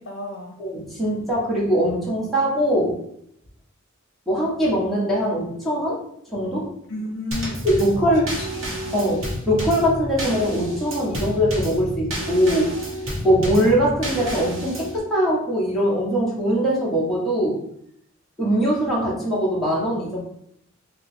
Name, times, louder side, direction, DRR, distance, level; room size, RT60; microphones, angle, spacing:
voice 1, 0.0-0.6 6.9-7.6 8.0-8.4 8.8-9.1, left 2 dB, 65° left, 1 dB, 0.7 m, -32 dB
voice 2, 0.6-2.9 4.3-6.0 6.3-6.7 7.6-8.3 8.9-12.7 13.2-17.6 18.4-20.2, equal, ahead, -7 dB, 1.2 m, -21 dB
Drum kit / Snare drum / Bass drum, 7.3-15.0, right 1 dB, 85° right, 1.2 m, -30 dB
3.3 x 2.3 x 4.1 m, 0.72 s
head